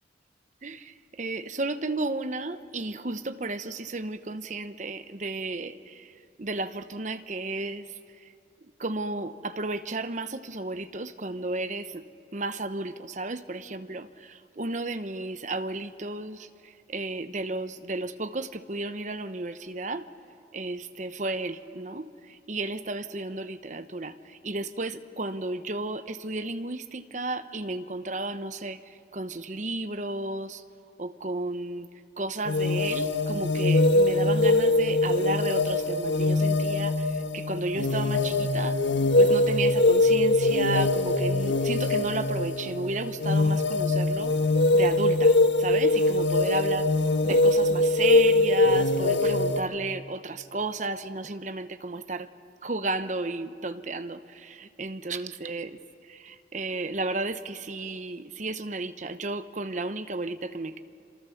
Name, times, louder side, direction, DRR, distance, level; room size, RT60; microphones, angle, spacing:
voice 1, 0.6-6.1 6.4-7.8 8.8-12.0 12.3-20.1 20.5-28.8 29.1-30.6 31.0-31.9 32.2-38.8 39.2-44.3 44.7-46.9 47.2-52.3 52.6-55.8 56.1-60.8, right 2 dB, 40° right, 11 dB, 0.9 m, -33 dB
sound 1, 32.5-49.6, left 2 dB, 80° left, 1.2 m, -23 dB
27.5 x 26.5 x 7.1 m, 2.4 s
head